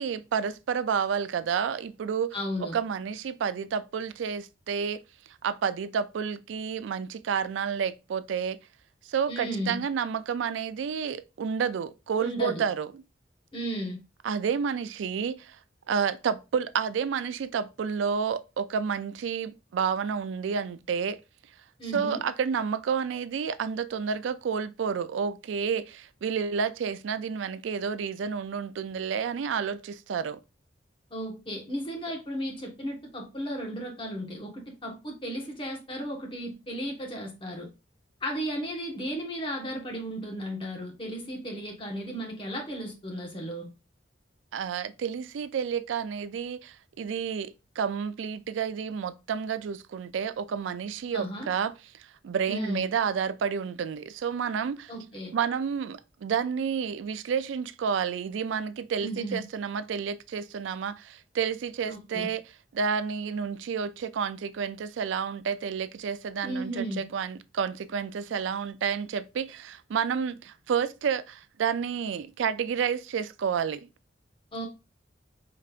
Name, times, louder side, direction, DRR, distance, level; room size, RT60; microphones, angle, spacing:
voice 1, 0.0-5.0 5.4-8.6 9.1-12.9 14.2-15.6 15.9-21.2 21.9-30.4 44.5-51.7 52.2-54.9 55.3-62.4 62.7-73.9, right 6 dB, 80° right, 0.3 m, -30 dB
voice 2, 2.3-2.8 9.3-9.8 12.2-12.6 13.5-14.0 21.8-22.2 31.1-37.7 38.2-43.7 51.1-51.5 52.5-52.8 54.9-55.3 59.0-59.4 61.9-62.3 66.4-67.1 74.5-74.7, equal, 30° left, 1.2 m, -35 dB
4.9 x 3.3 x 2.4 m
head